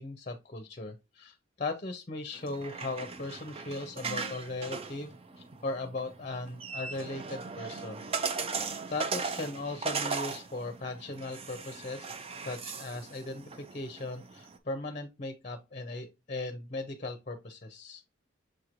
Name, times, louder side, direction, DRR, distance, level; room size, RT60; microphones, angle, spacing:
voice 1, 0.0-8.4 8.9-12.1 12.4-18.0, left 2 dB, 35° left, 9 dB, 0.6 m, -38 dB
sound 1, 2.3-14.6, right 5 dB, 30° right, 0.4 m, -38 dB
6.3 x 3.0 x 2.5 m, 0.25 s
head